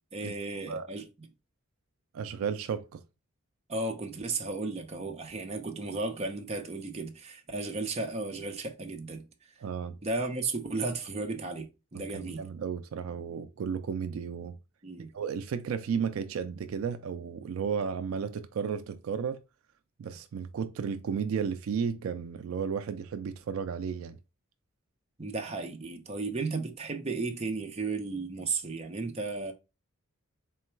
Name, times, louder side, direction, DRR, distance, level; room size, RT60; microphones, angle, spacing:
voice 1, 0.1-1.1 3.7-9.2 10.0-12.4 14.8-15.1 25.2-29.5, right 3 dB, 30° right, 0.6 m, -34 dB
voice 2, 2.1-3.0 9.6-9.9 12.1-14.6 15.1-19.4 20.0-24.2, right 6 dB, 70° right, 0.3 m, -33 dB
3.8 x 2.2 x 4.4 m
head